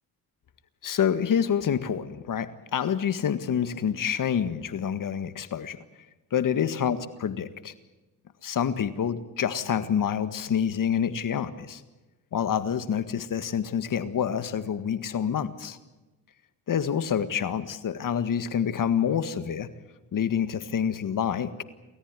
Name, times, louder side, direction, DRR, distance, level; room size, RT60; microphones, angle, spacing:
voice 1, 0.8-5.8 6.3-7.7 8.4-11.8 12.3-15.8 16.7-19.7 20.1-21.6, left 8 dB, 50° left, 12 dB, 1.8 m, -27 dB
29.0 x 14.5 x 9.8 m, 1.1 s
cardioid pair, 90°, 41 cm